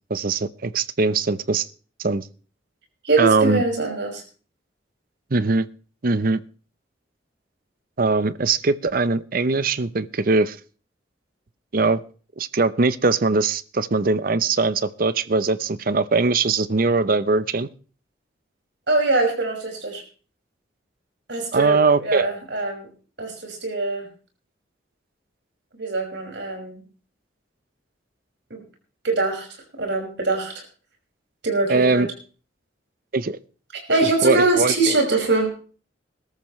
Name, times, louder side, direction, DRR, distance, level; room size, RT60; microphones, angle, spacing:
voice 1, 0.1-1.7 2.0-2.2 3.2-3.6 5.3-5.7 6.0-6.4 8.0-10.6 11.7-12.0 12.4-17.7 21.5-22.3 31.7-32.1 33.1-33.4 34.2-34.7, right 3 dB, 50° right, 16 dB, 0.7 m, -21 dB
voice 2, 3.0-4.2 18.9-20.0 21.3-22.9 23.2-24.1 25.8-26.8 28.5-28.6 29.0-29.5 29.8-30.6 31.4-32.1 33.7-35.5, right 3 dB, 65° right, 2 dB, 5.7 m, -23 dB
21.0 x 13.5 x 3.2 m, 0.38 s
head